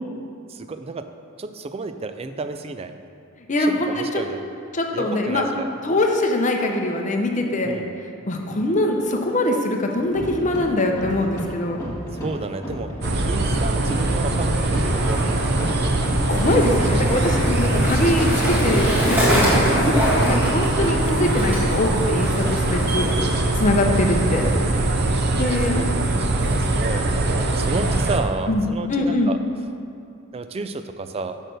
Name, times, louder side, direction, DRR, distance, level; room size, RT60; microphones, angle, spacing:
voice 1, 0.5-1.1 1.4-3.0 3.7-4.4 4.9-5.7 7.6-7.9 12.2-12.9 13.2-15.4 19.5-19.8 25.4-29.4 30.3-31.4, right 3 dB, 25° right, 9 dB, 0.3 m, -31 dB
voice 2, 3.5-4.2 4.7-5.5 5.8-7.8 8.3-11.8 16.0-19.9 20.2-23.1 23.5-24.4 25.3-25.8 28.5-29.3, left 1 dB, 35° left, 2 dB, 0.7 m, -23 dB
sound 1, 10.1-21.9, equal, 15° left, 1.7 m, -32 dB
sound 2, 13.0-28.2, right 2 dB, 50° right, 0.7 m, -22 dB
Skateboard, 14.3-27.0, equal, 10° right, 1.6 m, -27 dB
6.5 x 6.4 x 6.4 m, 2.5 s
head